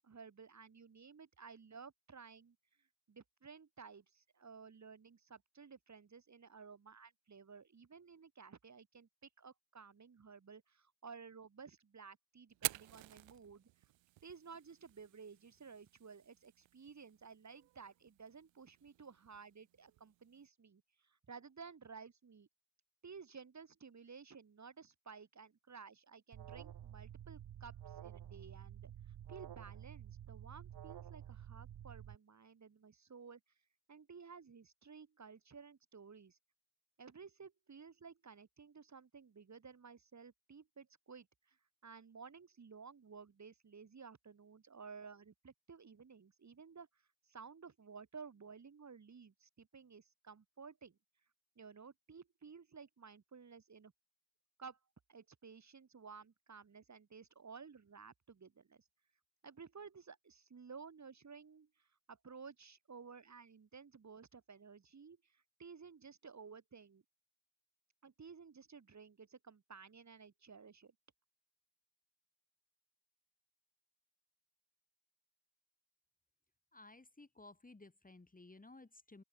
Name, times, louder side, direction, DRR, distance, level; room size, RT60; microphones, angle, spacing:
voice 1, 0.0-2.6 3.1-9.1 9.4-13.7 14.2-22.5 23.0-28.9 29.3-33.4 33.9-36.4 37.0-41.6 41.8-46.9 47.3-51.0 51.6-53.9 54.6-54.8 55.1-58.8 59.4-67.0 68.0-70.9, right 5 dB, 35° right, 2.5 m, -55 dB
Fire, 12.5-20.5, right 17 dB, 65° right, 1.2 m, -49 dB
Alarm, 26.3-32.1, right 10 dB, 50° right, 1.5 m, -51 dB
voice 2, 76.7-79.2, left 2 dB, 15° left, 2.4 m, -57 dB
open air
hypercardioid pair, 45°, 48 cm